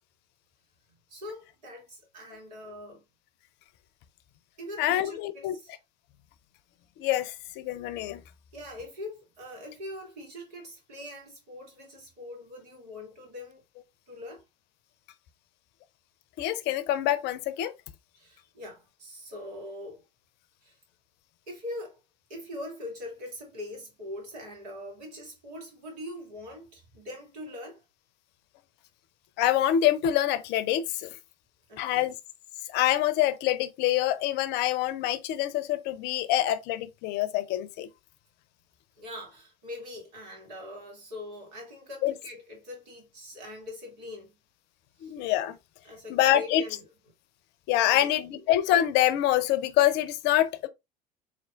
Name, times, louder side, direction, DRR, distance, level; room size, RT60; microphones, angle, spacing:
voice 1, 1.1-3.0 4.6-5.7 8.5-13.6 14.1-14.4 18.2-20.1 20.6-20.8 21.5-22.0 22.3-27.8 31.7-32.1 39.0-44.3 45.0-45.1 45.8-46.9 47.8-48.1, left 1 dB, 75° right, 1.9 m, -42 dB
voice 2, 4.8-5.6 7.0-8.2 16.4-17.7 29.4-31.2 31.8-32.1 32.7-37.9 42.0-42.1 45.0-45.6 46.1-46.6 47.7-50.7, left 12 dB, 55° left, 0.5 m, -25 dB
4.2 x 3.1 x 2.4 m
hypercardioid pair, 70°, 21 cm